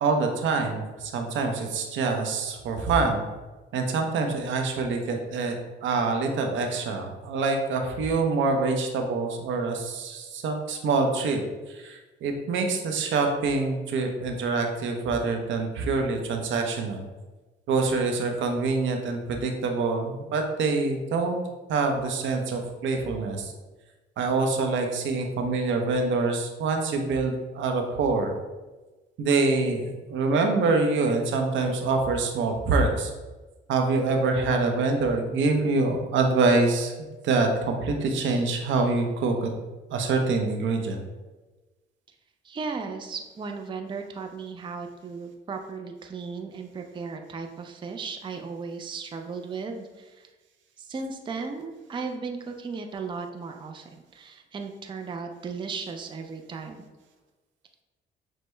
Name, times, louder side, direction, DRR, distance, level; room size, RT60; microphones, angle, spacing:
voice 1, 0.0-3.2 3.7-5.6 5.8-11.4 11.7-17.0 17.7-21.4 21.7-23.5 24.2-28.3 29.2-33.1 33.7-36.9 37.2-39.5 39.9-41.0, right 3 dB, 75° right, 3 dB, 0.6 m, -25 dB
voice 2, 42.4-50.3 50.8-56.8, right 4 dB, 25° right, 4 dB, 0.4 m, -36 dB
6.1 x 2.1 x 3.2 m, 1.2 s
cardioid pair, 90°, 20 cm